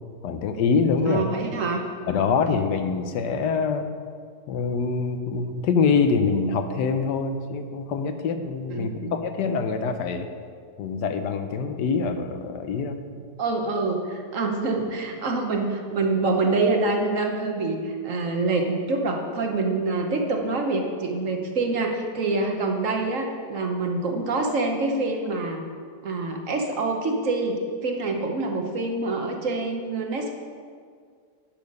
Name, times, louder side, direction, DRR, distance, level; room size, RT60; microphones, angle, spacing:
voice 1, 0.2-1.2 2.1-3.9 4.5-10.3 10.8-13.0, left 5 dB, 75° left, 8 dB, 1.3 m, -25 dB
voice 2, 1.0-1.8 8.7-9.2 13.4-25.6 26.0-30.3, right 3 dB, 55° right, 3 dB, 1.2 m, -26 dB
10.5 x 6.9 x 5.3 m, 2.1 s
omnidirectional pair, 1.8 m